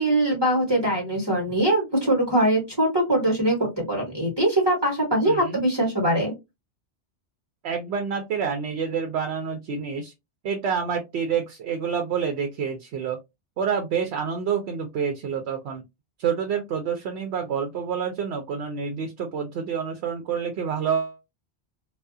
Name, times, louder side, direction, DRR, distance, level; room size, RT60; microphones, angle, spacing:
voice 1, 0.0-6.3, right 1 dB, 25° right, 1.1 m, -22 dB
voice 2, 5.3-5.6 7.6-10.1 10.4-13.2 13.6-15.8 16.2-21.2, right 7 dB, 85° right, 0.8 m, -28 dB
2.3 x 2.3 x 2.5 m
omnidirectional pair, 1.1 m